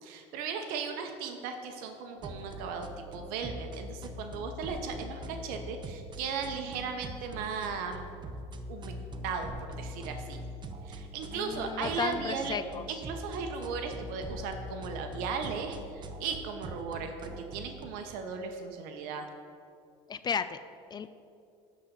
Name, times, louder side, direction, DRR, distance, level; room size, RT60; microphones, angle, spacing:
voice 1, 0.0-8.0 8.7-8.9 9.2-10.4 10.8-12.6 12.9-19.3, right 5 dB, 70° right, 5 dB, 0.9 m, -37 dB
sound 1, 2.2-17.9, equal, 30° right, 0.8 m, -43 dB
voice 2, 11.3-12.8 20.1-20.6 20.9-21.1, left 6 dB, 30° left, 12 dB, 0.4 m, -34 dB
11.0 x 4.2 x 7.0 m, 2.4 s
supercardioid pair, 100°, 15 cm